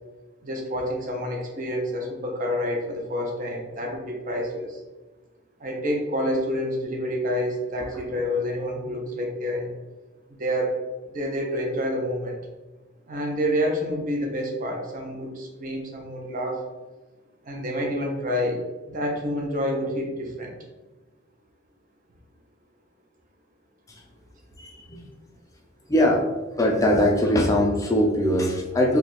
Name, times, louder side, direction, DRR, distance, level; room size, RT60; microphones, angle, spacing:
voice 1, 0.4-4.8 5.6-9.8 10.4-10.8 11.1-12.4 13.1-16.6 17.5-20.6, equal, 40° right, 1 dB, 0.6 m, -28 dB
voice 2, 24.6-25.0 25.9-26.2 26.6-29.0, equal, 15° left, 0 dB, 0.4 m, -21 dB
2.7 x 2.4 x 4.0 m, 1.2 s
head